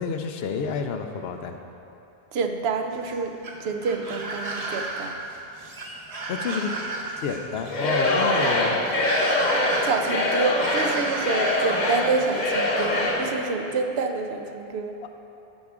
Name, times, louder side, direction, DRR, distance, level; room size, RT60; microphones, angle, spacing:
voice 1, 0.0-1.6 6.3-6.7 7.2-8.8 15.0-15.1, left 6 dB, 80° left, 6 dB, 0.8 m, -29 dB
voice 2, 2.3-3.3 3.6-5.1 9.8-14.9, right 4 dB, 80° right, 5 dB, 0.9 m, -27 dB
sound 1, 2.9-12.9, right 2 dB, 40° right, 0.8 m, -34 dB
Singing / Crowd, 7.7-13.4, left 1 dB, 50° left, 0.9 m, -24 dB
12.5 x 4.8 x 3.6 m, 2.8 s
omnidirectional pair, 1.0 m